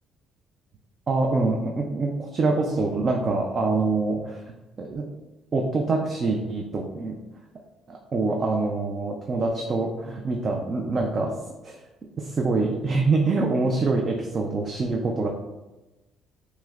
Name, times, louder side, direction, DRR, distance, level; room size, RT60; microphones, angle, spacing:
voice 1, 1.1-4.4 4.8-5.0 5.5-7.2 7.9-11.3 11.6-11.8 12.2-15.3, right 3 dB, 40° right, 1 dB, 0.4 m, -25 dB
5.8 x 2.1 x 2.4 m, 1.1 s
cardioid pair, 110°, 0 cm